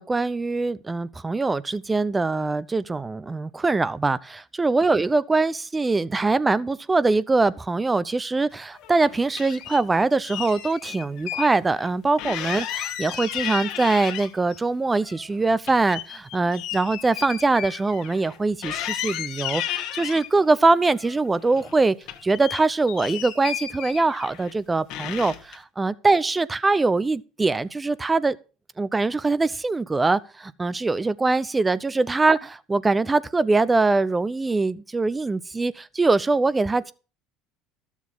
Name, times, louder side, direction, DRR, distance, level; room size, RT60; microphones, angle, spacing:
voice 1, 0.0-21.9 22.2-28.4 28.8-36.9, right 3 dB, 15° right, 0.7 m, -23 dB
sound 1, 8.8-9.8 10.2-11.5 11.8-11.9 12.2-14.6 15.0-18.4 18.6-20.3 20.9-21.7 22.0-24.5 24.9-25.6, left 11 dB, 65° left, 1.6 m, -33 dB
12.5 x 7.3 x 5.6 m
supercardioid pair, 95°, 0 cm